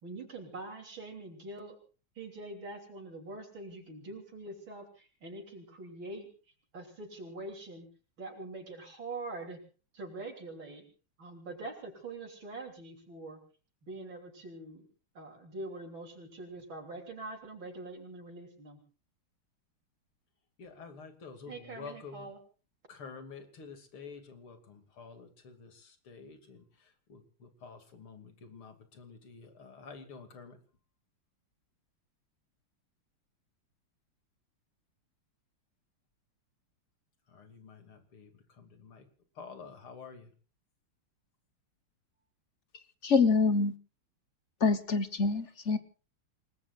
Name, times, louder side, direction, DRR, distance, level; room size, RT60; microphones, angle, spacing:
voice 1, 0.0-1.8 2.2-6.3 6.7-7.9 8.2-9.6 9.9-10.9 11.2-13.4 13.8-14.9 15.2-18.8 21.5-22.4, right 2 dB, 65° right, 4.1 m, -44 dB
voice 2, 20.6-22.3 22.9-26.6 27.1-30.6 37.3-38.3 38.6-39.0 39.4-40.3, left 5 dB, 85° left, 3.5 m, -49 dB
voice 3, 43.0-43.7 44.6-45.8, left 4 dB, 40° left, 1.2 m, -26 dB
28.5 x 19.5 x 2.5 m
omnidirectional pair, 2.3 m